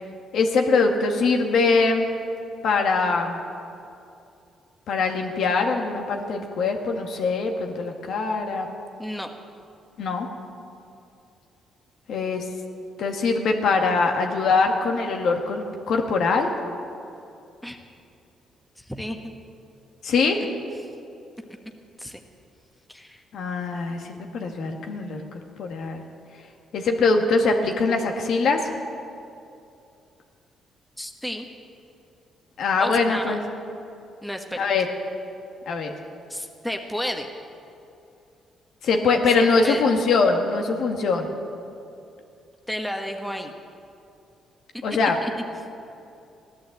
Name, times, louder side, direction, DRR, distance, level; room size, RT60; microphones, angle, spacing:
voice 1, 0.3-2.1 2.6-3.4 4.9-8.7 10.0-10.3 12.1-12.4 13.0-16.5 20.0-20.4 23.3-25.2 25.6-26.0 26.7-28.7 32.6-33.4 34.6-34.9 35.7-35.9 38.8-41.3 44.8-45.2, left 4 dB, 70° left, 3 dB, 1.7 m, -22 dB
voice 2, 9.0-9.3 17.6-17.8 18.8-19.2 22.0-22.2 22.9-23.2 31.0-31.5 32.8-33.4 34.2-34.6 36.3-37.3 39.4-39.9 42.7-43.5 45.2-45.3, equal, 5° left, 4 dB, 1.3 m, -32 dB
16.0 x 11.5 x 7.9 m, 2.6 s
cardioid pair, 90°, 0 cm